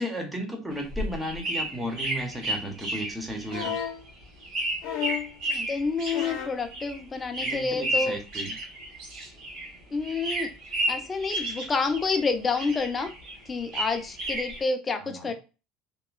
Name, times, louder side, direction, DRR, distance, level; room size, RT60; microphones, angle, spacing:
voice 1, 0.0-3.8 7.4-8.6 15.0-15.3, equal, 10° right, 3 dB, 0.8 m, -34 dB
sound 1, 0.7-9.8 10.0-12.3 12.5-14.6, right 1 dB, 60° right, 1.2 m, -32 dB
sound 2, 3.5-4.0 4.8-5.4 6.1-6.6 7.8-7.9, left 9 dB, 65° left, 0.7 m, -32 dB
voice 2, 5.5-8.2 9.9-10.5 10.9-13.1 13.5-15.3, left 4 dB, 20° left, 6 dB, 0.5 m, -28 dB
2.9 x 2.2 x 2.2 m, 0.31 s
supercardioid pair, 110°, 0 cm